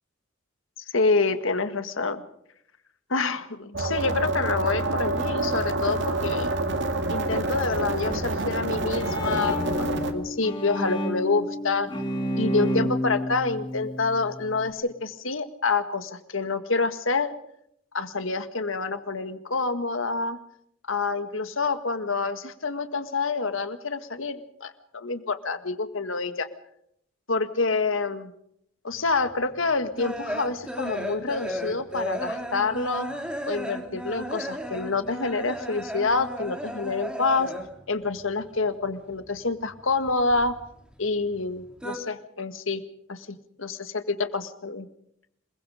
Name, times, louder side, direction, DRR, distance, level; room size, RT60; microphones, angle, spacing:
voice 1, 0.9-2.2 3.1-6.5 7.1-11.9 12.4-17.3 17.9-20.4 20.9-26.5 27.3-28.3 28.8-33.1 33.4-37.5 37.9-40.6 41.0-42.8 43.1-44.9, left 3 dB, 70° left, 10 dB, 1.9 m, -27 dB
sound 1, 3.7-10.1, right 2 dB, 60° right, 2.3 m, -27 dB
Bowed string instrument, 8.6-14.7, equal, 20° left, 2.5 m, -30 dB
sound 2, 29.1-37.9 38.1-39.4 39.6-41.0 41.3-42.0, equal, 5° right, 2.8 m, -35 dB
27.5 x 22.0 x 5.1 m, 0.71 s
head